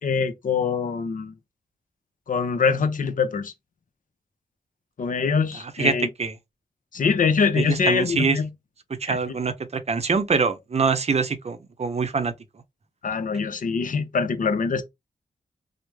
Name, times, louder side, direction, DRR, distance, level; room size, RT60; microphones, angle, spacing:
voice 1, 0.0-1.3 2.3-3.5 5.0-6.1 6.9-8.5 9.1-9.2 13.0-14.8, left 5 dB, 60° left, 0.6 m, -23 dB
voice 2, 5.8-6.3 7.6-8.4 9.0-12.3, right 5 dB, 45° right, 0.6 m, -24 dB
3.0 x 2.0 x 3.4 m
cardioid pair, 55°, 16 cm